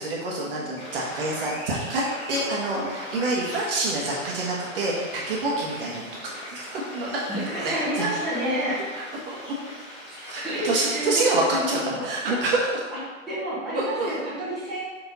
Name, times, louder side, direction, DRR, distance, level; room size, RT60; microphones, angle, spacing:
voice 1, 0.0-2.0 2.3-6.1 6.5-7.2 7.6-8.1 9.4-9.5 10.2-12.8 13.7-14.1, right 2 dB, 45° right, -4 dB, 1.4 m, -27 dB
sound 1, 0.7-11.5, equal, 25° left, 1.5 m, -40 dB
voice 2, 7.3-8.8 10.1-12.1 13.3-14.8, equal, ahead, -14 dB, 1.5 m, -30 dB
5.7 x 4.4 x 4.0 m, 1.4 s
hypercardioid pair, 165°, 41 cm